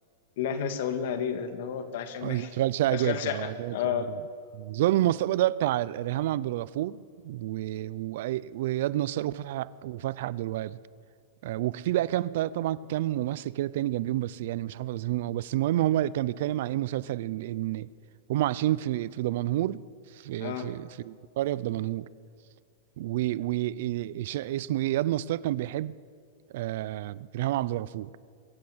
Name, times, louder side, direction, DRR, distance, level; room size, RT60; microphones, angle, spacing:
voice 1, 0.4-2.5 2.9-4.1 20.4-20.7, left 8 dB, 60° left, 2.0 m, -31 dB
voice 2, 2.2-4.2 4.5-10.8 11.4-17.9 18.3-19.8 20.1-22.1 23.0-25.9 26.5-28.1, right 14 dB, 60° right, 0.5 m, -29 dB
23.0 x 14.5 x 8.0 m
supercardioid pair, 160°, 0 cm